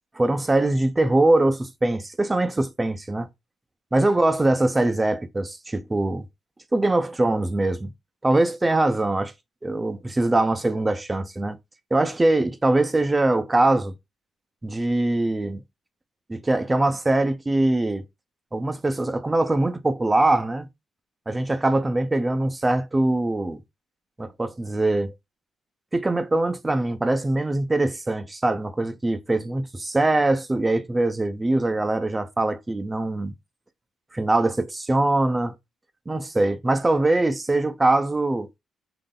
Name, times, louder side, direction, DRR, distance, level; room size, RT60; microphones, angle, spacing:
voice 1, 0.1-3.3 3.9-6.3 6.7-7.9 8.2-9.3 9.6-11.6 11.9-13.9 14.6-15.6 16.3-18.0 18.5-20.7 21.3-23.6 24.2-25.1 25.9-33.3 34.1-35.5 36.1-38.5, right 2 dB, 20° right, 0.6 m, -22 dB
3.9 x 2.7 x 3.7 m
cardioid pair, 90°, 0 cm